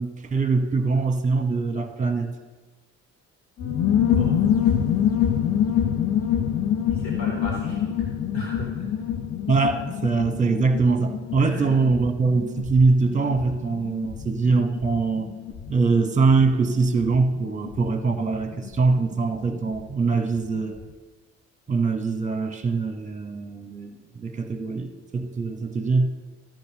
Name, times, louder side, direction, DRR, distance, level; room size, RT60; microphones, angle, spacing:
voice 1, 0.0-2.3 9.5-15.3 15.7-20.8 21.7-26.1, right 4 dB, 20° right, 7 dB, 1.1 m, -23 dB
sound 1, 3.6-19.9 20.1-20.2 20.4-20.9, left 9 dB, 35° left, 0.8 m, -26 dB
voice 2, 6.9-7.9 8.3-8.9 11.4-11.7, equal, 65° left, -4 dB, 3.2 m, -35 dB
13.5 x 9.1 x 2.9 m, 1.3 s
hypercardioid pair, 50°, 38 cm